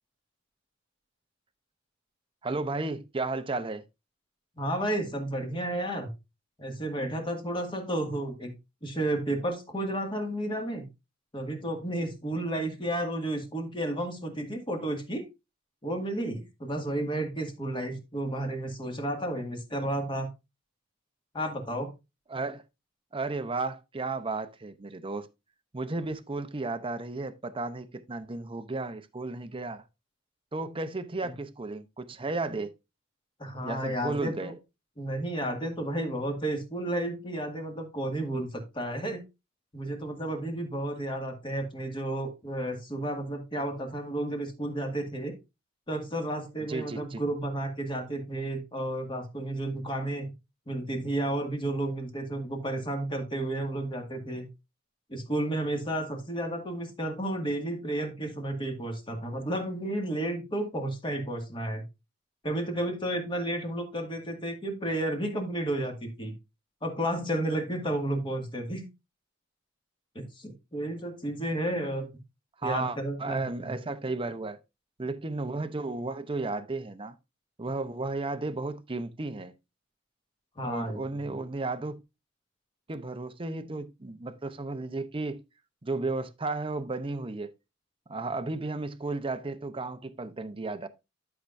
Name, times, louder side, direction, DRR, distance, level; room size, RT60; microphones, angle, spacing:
voice 1, 2.4-3.8 22.3-22.6 23.1-25.3 25.7-29.8 30.5-32.7 33.6-34.6 46.7-47.2 72.6-74.6 75.0-77.2 77.6-79.5 80.6-82.0 82.9-85.4 85.8-87.5 88.1-90.9, right 3 dB, 25° right, 0.7 m, -33 dB
voice 2, 4.6-6.1 6.6-8.5 8.8-10.9 11.3-15.3 15.8-20.3 21.3-21.9 31.2-31.3 33.4-34.5 35.0-39.2 39.7-45.4 45.9-50.3 50.7-54.5 55.1-61.8 62.4-66.3 66.8-68.9 70.2-72.1 72.6-73.7 80.6-81.0, right 1 dB, 25° left, 1.9 m, -32 dB
11.5 x 5.8 x 2.6 m
head